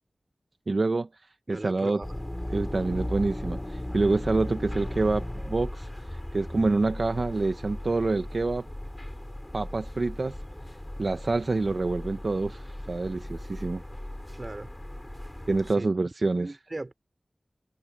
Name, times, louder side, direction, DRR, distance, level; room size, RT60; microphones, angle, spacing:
voice 1, 0.7-1.1 1.5-2.0 2.5-8.7 9.5-10.4 11.0-13.8 15.5-16.5, right 3 dB, 65° right, 0.9 m, -27 dB
voice 2, 1.5-2.2 14.3-14.7 15.8-15.9 16.3-16.9, right 2 dB, 40° right, 4.4 m, -38 dB
sound 1, 2.0-15.7, left 1 dB, 20° left, 7.5 m, -37 dB
wide cardioid pair, 55°, 0 cm